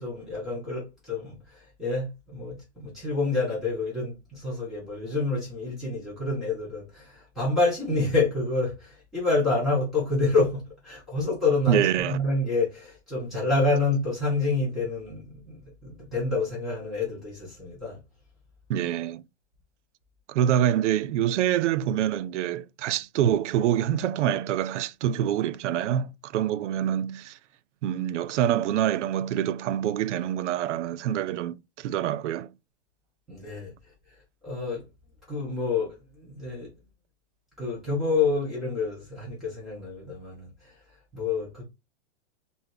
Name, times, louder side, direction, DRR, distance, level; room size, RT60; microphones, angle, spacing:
voice 1, 0.0-18.0 33.3-33.7 34.4-34.8 35.3-36.7 37.6-40.8 41.1-41.6, left 3 dB, ahead, 2.0 m, -28 dB
voice 2, 11.7-12.2 18.7-19.2 20.3-27.4 27.8-32.5, right 10 dB, 85° right, 0.5 m, -26 dB
5.7 x 2.1 x 3.6 m
supercardioid pair, 175°, 35 cm